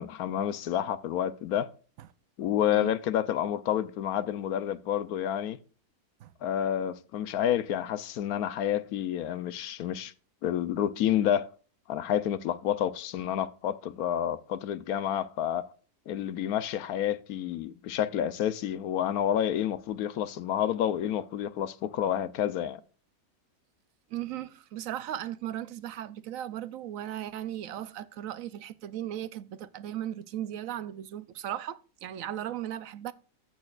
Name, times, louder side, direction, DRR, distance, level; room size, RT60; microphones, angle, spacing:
voice 1, 0.0-1.7 2.4-5.6 6.4-10.1 10.4-11.5 11.9-15.7 16.1-22.8, left 10 dB, 85° left, 1.1 m, -29 dB
voice 2, 24.1-33.1, right 11 dB, 70° right, 1.0 m, -37 dB
14.5 x 6.4 x 2.4 m
omnidirectional pair, 1.6 m